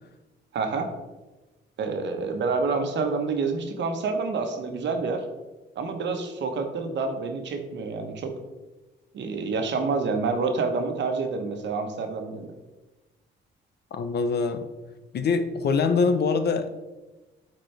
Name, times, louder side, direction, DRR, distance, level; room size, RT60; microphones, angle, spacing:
voice 1, 0.5-0.9 1.8-5.2 5.8-8.3 9.1-12.5, right 4 dB, 65° right, 5 dB, 1.1 m, -28 dB
voice 2, 13.9-14.6 15.1-16.7, left 4 dB, 55° left, 9 dB, 0.7 m, -24 dB
8.8 x 4.3 x 3.3 m, 1.1 s
cardioid pair, 90°, 20 cm